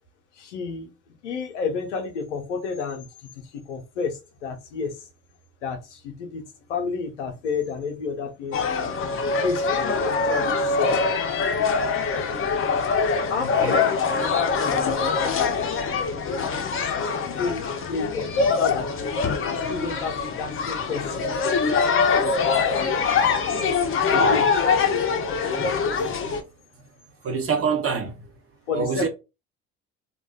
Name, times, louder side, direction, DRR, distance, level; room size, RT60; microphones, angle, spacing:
voice 1, 0.4-0.9 1.2-3.1 3.3-5.1 5.6-6.4 6.7-8.6 9.0-11.0 13.3-13.8 14.6-15.0 17.4-17.6 17.9-18.9 19.3-21.3 24.1-24.4 28.7-29.1, left 5 dB, 90° left, 0.7 m, -30 dB
sound 1, 8.5-26.4, left 5 dB, 35° left, 0.6 m, -23 dB
voice 2, 13.4-13.8 21.6-21.8 24.1-24.4 27.2-28.3 28.7-29.1, right 5 dB, 40° right, 0.9 m, -26 dB
2.5 x 2.2 x 2.3 m
hypercardioid pair, 55°, 35 cm